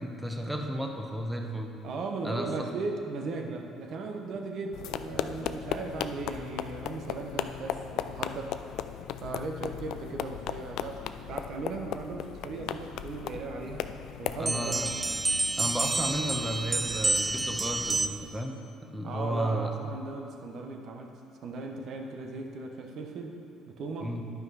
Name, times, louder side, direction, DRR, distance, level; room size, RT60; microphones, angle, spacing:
voice 1, 0.0-1.7 2.2-2.5 14.4-14.9 15.6-18.6 18.8-19.7 24.0-24.2, equal, 5° right, 2 dB, 1.0 m, -33 dB
voice 2, 1.8-8.6 9.2-13.9 14.2-14.9 19.0-21.1 21.4-23.4 23.7-24.1, right 3 dB, 60° right, 2 dB, 1.1 m, -37 dB
sound 1, 4.7-14.4, left 10 dB, 70° left, 0.3 m, -36 dB
sound 2, 14.4-18.4, right 3 dB, 25° right, 0.3 m, -29 dB
10.5 x 5.3 x 4.8 m, 2.8 s
supercardioid pair, 75°, 0 cm